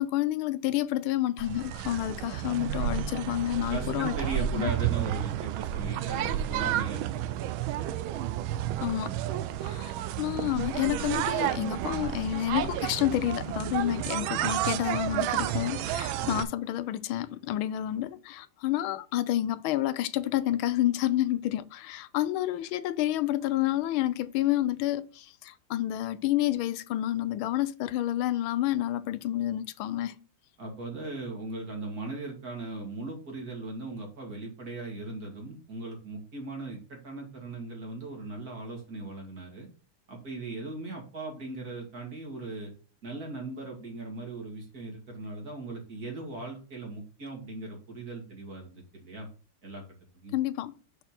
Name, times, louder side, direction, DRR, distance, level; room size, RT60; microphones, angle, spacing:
voice 1, 0.0-4.1 4.5-4.7 8.8-9.1 9.6-30.2 50.3-50.7, left 13 dB, 85° left, 1.4 m, -29 dB
sound 1, 1.4-16.4, right 12 dB, 85° right, 1.4 m, -31 dB
voice 2, 3.7-7.4 8.3-8.6 16.2-16.4 30.6-39.7 40.1-42.7 43.0-49.3 49.6-49.8 50.1-50.4, right 2 dB, 45° right, 2.7 m, -39 dB
6.5 x 4.3 x 5.8 m
omnidirectional pair, 2.2 m